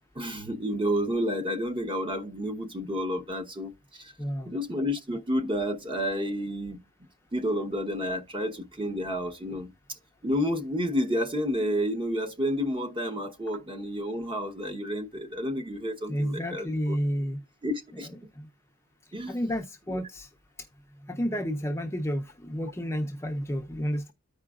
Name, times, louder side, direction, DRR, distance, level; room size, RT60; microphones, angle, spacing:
voice 1, 0.1-4.1 4.4-6.8 7.3-9.7 10.2-17.0 17.6-18.1 19.1-19.3 19.9-20.0, equal, 25° right, 1.0 m, -30 dB
voice 2, 4.2-4.6 16.1-17.4 19.3-20.3 21.1-24.1, equal, 10° left, 0.6 m, -30 dB
14.0 x 4.8 x 2.4 m
head